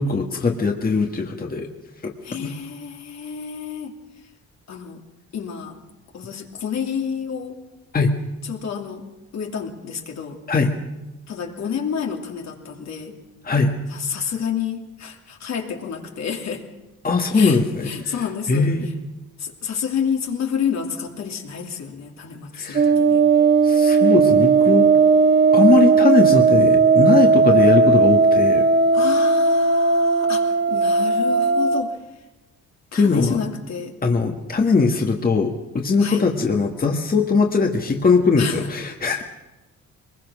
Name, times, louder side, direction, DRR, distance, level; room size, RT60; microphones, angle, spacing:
voice 1, 0.0-1.7 2.0-2.5 7.9-8.1 10.5-10.7 13.4-13.7 17.0-17.9 18.5-18.9 22.5-22.9 23.6-24.9 25.5-28.6 32.9-33.4 34.0-39.2, left 4 dB, 30° left, 2 dB, 1.7 m, -20 dB
voice 2, 2.2-4.0 4.7-5.0 5.3-5.8 6.1-7.6 8.4-9.0 9.3-10.4 11.3-13.2 13.9-16.6 17.3-18.7 19.4-23.2 28.9-32.0 32.9-34.0 36.0-36.3 38.4-38.7, left 7 dB, 60° left, 2 dB, 2.9 m, -29 dB
sound 1, 22.7-31.8, right 4 dB, 40° right, 1.5 m, -16 dB
22.0 x 20.5 x 6.3 m, 1.1 s
cardioid pair, 90°, 30 cm